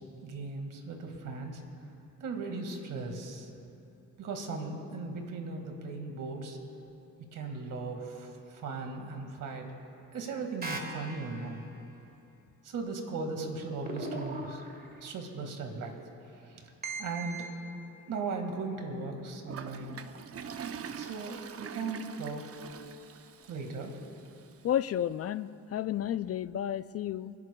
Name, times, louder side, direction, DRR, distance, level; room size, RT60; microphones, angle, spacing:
voice 1, 0.2-1.6 2.2-3.5 4.2-6.6 7.2-9.7 10.1-11.6 12.6-14.6 15.0-15.9 16.3-16.7 17.0-17.5 18.1-20.1 21.0-22.4 23.5-24.0, right 3 dB, 80° right, 3 dB, 2.0 m, -37 dB
sound 1, 10.6-11.6 13.8-15.0 16.8-17.5, right 2 dB, 30° right, 2.1 m, -39 dB
Toilet flush, 19.5-24.5, right 7 dB, 45° right, 0.7 m, -44 dB
voice 2, 24.6-27.3, left 10 dB, 50° left, 15 dB, 0.4 m, -32 dB
30.0 x 11.0 x 2.3 m, 2.8 s
cardioid pair, 85°, 31 cm